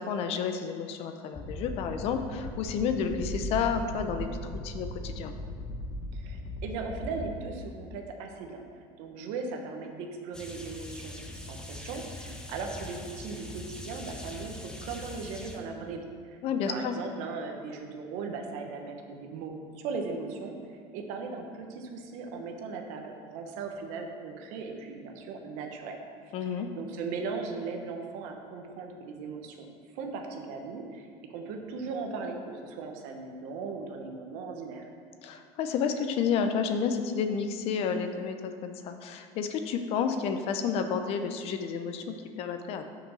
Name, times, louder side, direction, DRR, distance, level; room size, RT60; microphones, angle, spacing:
voice 1, 0.0-4.3 4.6-5.3 16.4-16.9 26.3-26.7 35.2-43.0, left 6 dB, 50° left, 7 dB, 0.6 m, -30 dB
sound 1, 1.3-7.3, left 1 dB, 25° left, 0.9 m, -38 dB
voice 2, 6.1-16.4 16.7-26.0 26.5-29.7 29.9-34.8, right 4 dB, 70° right, 3 dB, 1.0 m, -38 dB
sound 2, 10.3-15.6, left 1 dB, 5° left, 0.6 m, -42 dB
6.1 x 5.0 x 6.3 m, 2.1 s
cardioid pair, 140°, 13 cm